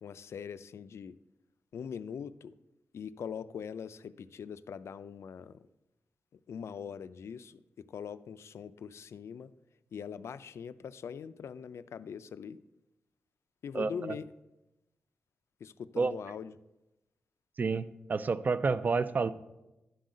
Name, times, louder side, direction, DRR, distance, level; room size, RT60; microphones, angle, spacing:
voice 1, 0.0-1.2 1.7-2.5 2.9-5.7 6.3-9.5 9.9-12.6 13.6-14.3 15.6-16.6, left 7 dB, 90° left, 15 dB, 0.4 m, -42 dB
voice 2, 17.6-19.3, right 4 dB, 40° right, 13 dB, 0.4 m, -29 dB
11.0 x 3.9 x 7.3 m, 0.96 s
wide cardioid pair, 145°, 5 cm